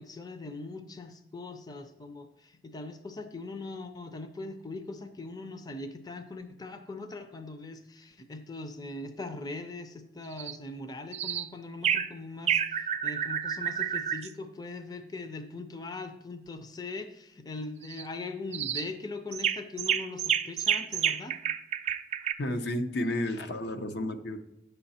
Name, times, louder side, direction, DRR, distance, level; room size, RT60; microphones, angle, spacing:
voice 1, 0.0-21.4, left 3 dB, 20° left, 8 dB, 0.5 m, -41 dB
sound 1, 10.3-10.6 11.1-11.5 11.8-12.1 12.5-14.3 17.8-18.0 18.5-18.9 19.3-22.3, right 9 dB, 40° right, 0.4 m, -29 dB
voice 2, 22.4-24.4, left 1 dB, 75° left, 7 dB, 0.8 m, -31 dB
9.6 x 6.8 x 4.2 m, 0.83 s
head